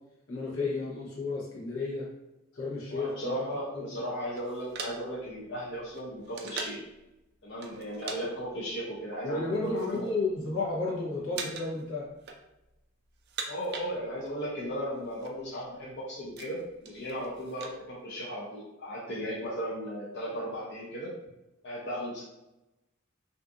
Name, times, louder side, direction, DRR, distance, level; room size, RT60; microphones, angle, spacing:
voice 1, 0.3-2.1 2.5-3.4 3.7-3.9 9.2-12.1, left 3 dB, 90° left, -5 dB, 0.9 m, -32 dB
voice 2, 2.9-6.8 7.4-10.1 13.5-21.1 21.6-22.2, equal, 55° left, -4 dB, 0.5 m, -36 dB
sound 1, 4.4-6.9 7.6-8.2 8.5-8.7 9.4-10.1 10.4-10.9 11.3-11.8 12.1-12.8 13.1-14.4 14.7-14.8 15.0-15.3 15.8-17.8, right 5 dB, 50° right, 0.3 m, -41 dB
2.5 x 2.5 x 2.4 m, 0.93 s
head